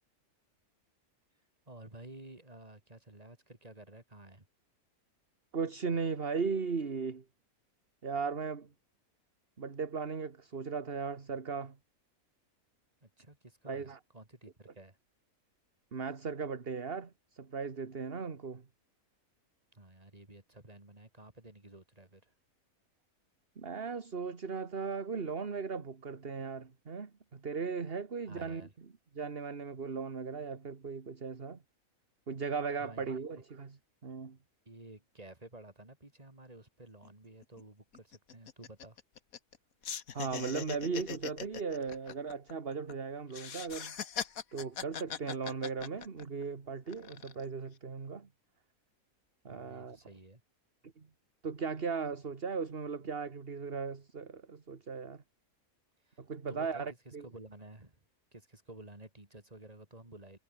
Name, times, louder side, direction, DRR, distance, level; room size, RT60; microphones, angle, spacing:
voice 1, 1.7-4.5 13.0-15.0 19.7-22.3 28.2-28.7 32.7-33.4 34.7-39.0 49.5-50.4 56.0-56.2 56.5-58.0 58.3-60.4, right 2 dB, 25° right, 3.7 m, -52 dB
voice 2, 5.5-7.2 8.0-8.7 9.6-11.8 13.7-14.0 15.9-18.6 23.6-28.6 29.2-31.6 32.3-33.8 34.0-34.4 40.1-43.9 44.5-48.3 49.5-50.0 50.8-51.1 51.4-55.2 56.2-57.2, right 5 dB, 40° right, 1.8 m, -37 dB
sound 1, 37.0-37.1 37.4-37.6 37.9-39.6 39.8-42.9 43.3-46.4 46.9-47.5, left 7 dB, 70° left, 1.7 m, -41 dB
omnidirectional pair, 1.6 m